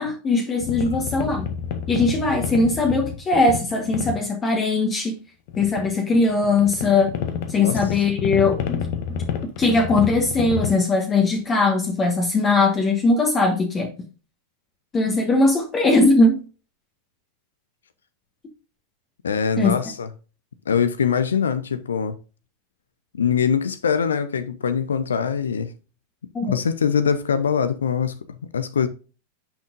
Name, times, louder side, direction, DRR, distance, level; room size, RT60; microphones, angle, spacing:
voice 1, 0.0-1.5 1.9-5.1 5.6-7.1 7.5-8.8 9.6-13.9 14.9-16.4 19.6-19.7 26.3-26.6, left 3 dB, 20° left, 1.3 m, -20 dB
sound 1, 0.6-4.2 5.5-10.7, left 8 dB, 50° left, 1.1 m, -29 dB
voice 2, 19.2-20.1 20.7-22.2 23.1-25.7 26.4-28.9, left 7 dB, 70° left, 0.6 m, -23 dB
10.0 x 6.0 x 2.5 m
figure-of-eight pair, 90°, 0 cm